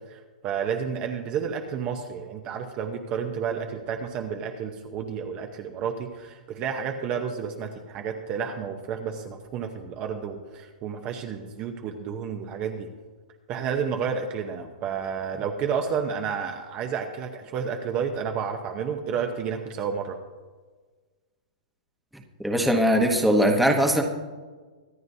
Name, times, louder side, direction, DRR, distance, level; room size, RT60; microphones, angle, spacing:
voice 1, 0.1-12.9 13.5-20.2, right 7 dB, 25° right, 4 dB, 0.8 m, -31 dB
voice 2, 22.4-24.0, equal, ahead, 2 dB, 1.0 m, -20 dB
24.0 x 9.3 x 2.7 m, 1.4 s
hypercardioid pair, 165°, 5 cm